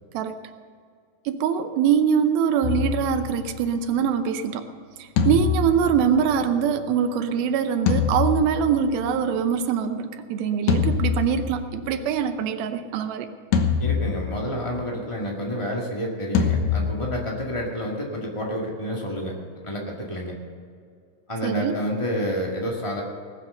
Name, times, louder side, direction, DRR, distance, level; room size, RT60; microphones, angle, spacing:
voice 1, 1.3-4.7 5.0-13.3 21.4-21.7, right 7 dB, 85° right, 7 dB, 2.6 m, -23 dB
sound 1, 2.6-3.9 5.2-6.9 7.9-9.2 10.7-12.0 13.5-14.7 16.3-17.8, left 6 dB, 70° left, 2.5 m, -25 dB
voice 2, 13.8-19.3 19.6-20.3 21.3-23.0, equal, 50° left, -2 dB, 0.3 m, -29 dB
19.0 x 7.8 x 6.7 m, 2.2 s
omnidirectional pair, 4.2 m